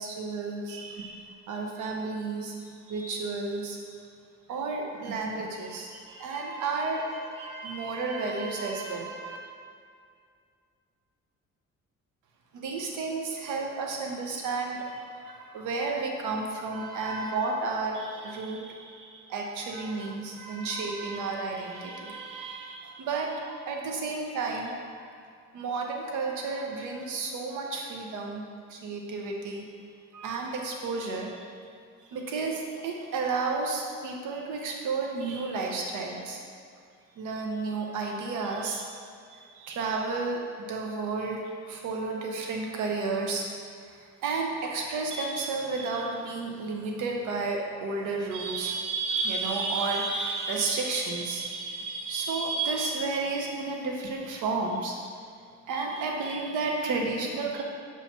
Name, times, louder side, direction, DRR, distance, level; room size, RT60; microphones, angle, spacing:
voice 1, 0.0-2.6 2.9-3.8 4.5-9.4 12.5-25.0 25.5-28.4 28.7-29.7 30.1-31.5 32.1-36.4 37.2-40.4 40.7-41.4 41.7-43.5 43.9-55.0 55.7-57.6, right 3 dB, 85° right, 1 dB, 0.7 m, -32 dB
5.6 x 3.1 x 5.6 m, 2.2 s
cardioid pair, 90°, 30 cm